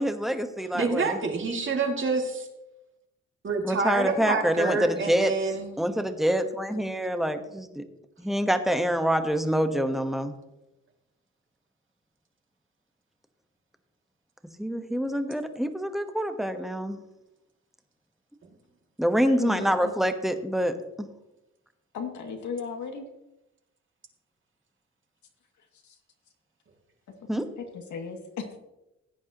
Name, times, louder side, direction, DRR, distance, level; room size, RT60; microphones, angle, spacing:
voice 1, 0.0-1.2 3.6-5.3 5.8-7.8 8.2-10.3 14.6-17.0 19.0-21.1 27.3-27.4, equal, ahead, 7 dB, 1.2 m, -26 dB
voice 2, 0.7-2.5 3.4-5.8, right 4 dB, 40° right, 2 dB, 2.5 m, -27 dB
voice 3, 19.2-19.9 21.9-23.0 27.7-28.6, left 5 dB, 70° left, 2 dB, 2.4 m, -35 dB
16.5 x 9.4 x 3.0 m, 0.93 s
cardioid pair, 90°, 30 cm